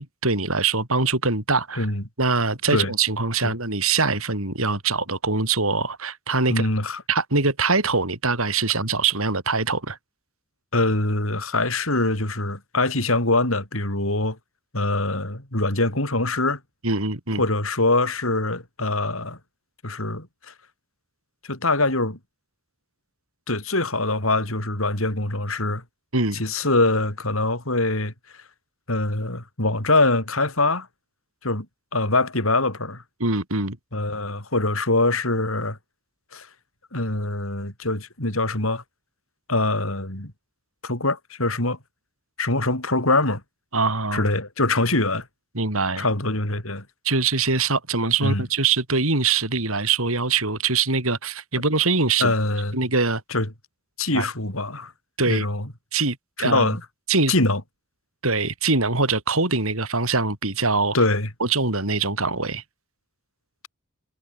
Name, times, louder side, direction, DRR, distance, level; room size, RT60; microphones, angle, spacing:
voice 1, 0.0-1.9 2.2-6.7 7.1-10.0 16.8-17.4 26.1-26.4 33.2-33.8 43.7-44.3 45.5-46.1 47.0-52.3 52.7-53.2 54.1-54.2 55.2-55.4 55.9-56.7 57.1-57.3 58.2-61.0 61.4-62.6, right 4 dB, 70° right, 5.2 m, -23 dB
voice 2, 6.5-7.0 10.7-14.4 14.7-16.6 17.4-19.4 19.8-20.5 21.4-22.2 23.5-25.8 26.3-28.1 28.9-30.9 31.4-31.7 31.9-33.0 33.9-35.8 36.3-36.5 36.9-38.8 39.5-40.3 40.8-41.8 42.4-43.4 44.1-45.3 46.0-46.8 48.2-48.4 52.2-52.8 53.3-53.5 54.0-54.9 55.3-55.7 56.4-56.8 57.3-57.6 60.9-61.3, left 2 dB, 65° left, 6.8 m, -23 dB
head